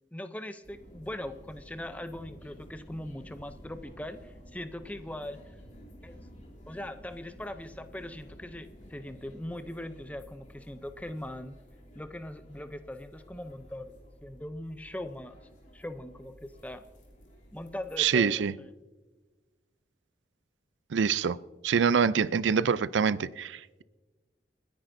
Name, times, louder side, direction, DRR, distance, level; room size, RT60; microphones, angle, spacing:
voice 1, 0.1-5.6 6.0-6.2 6.7-11.6 11.9-15.4 15.7-16.8 17.5-18.7, left 1 dB, 10° left, 10 dB, 0.5 m, -40 dB
sound 1, 0.6-18.1, equal, 45° left, 3.0 m, -52 dB
voice 2, 18.0-18.5 20.9-21.4 21.6-23.8, right 6 dB, 85° right, 18 dB, 0.4 m, -25 dB
29.5 x 10.0 x 2.6 m, 1.2 s
head